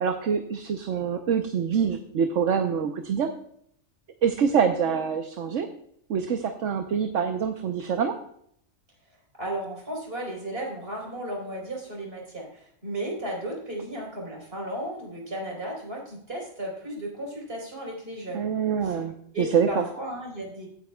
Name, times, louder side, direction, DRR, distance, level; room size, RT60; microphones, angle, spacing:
voice 1, 0.0-3.3 4.2-5.7 6.1-8.1 18.3-19.1 19.4-19.9, right 7 dB, 65° right, 6 dB, 1.2 m, -25 dB
voice 2, 9.4-18.4 18.8-19.0 19.3-20.7, right 1 dB, 45° right, -1 dB, 4.4 m, -34 dB
16.5 x 9.3 x 2.3 m, 0.67 s
omnidirectional pair, 1.4 m